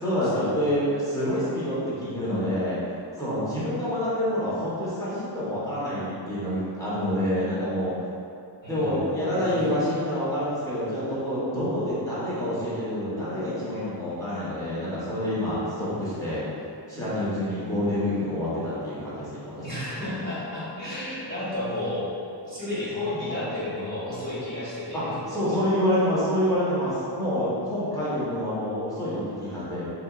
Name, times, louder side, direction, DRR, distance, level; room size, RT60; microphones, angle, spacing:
voice 1, 0.0-2.8 3.2-7.9 8.7-16.4 16.9-20.2 24.9-25.0 25.3-29.9, equal, 5° left, -11 dB, 0.9 m, -27 dB
voice 2, 8.6-9.1 9.3-9.5 19.6-22.1 22.4-25.2, left 1 dB, 45° left, -17 dB, 1.5 m, -32 dB
4.1 x 2.8 x 2.4 m, 2.6 s
wide cardioid pair, 175°, 45 cm